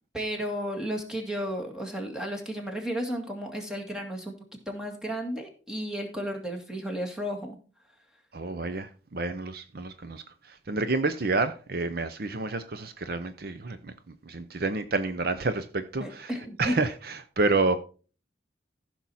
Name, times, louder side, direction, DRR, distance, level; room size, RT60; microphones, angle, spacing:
voice 1, 0.1-7.6 16.0-16.8, equal, 5° right, 2.0 m, -33 dB
voice 2, 8.3-13.9 14.3-16.3 16.6-17.8, right 3 dB, 55° right, 0.7 m, -29 dB
14.5 x 6.0 x 4.2 m
head